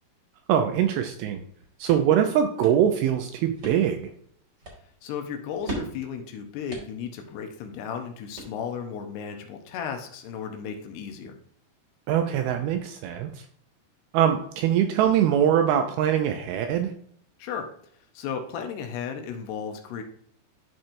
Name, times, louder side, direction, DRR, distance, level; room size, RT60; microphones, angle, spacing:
voice 1, 0.5-1.4 1.8-4.1 12.1-13.3 14.1-16.9, right 9 dB, 85° right, 6 dB, 2.3 m, -23 dB
sound 1, 1.4-9.0, right 1 dB, 40° right, 1.7 m, -42 dB
voice 2, 5.0-11.4 17.4-17.7 18.1-20.0, left 7 dB, 80° left, 5 dB, 2.9 m, -34 dB
12.5 x 4.4 x 2.6 m, 0.64 s
omnidirectional pair, 4.8 m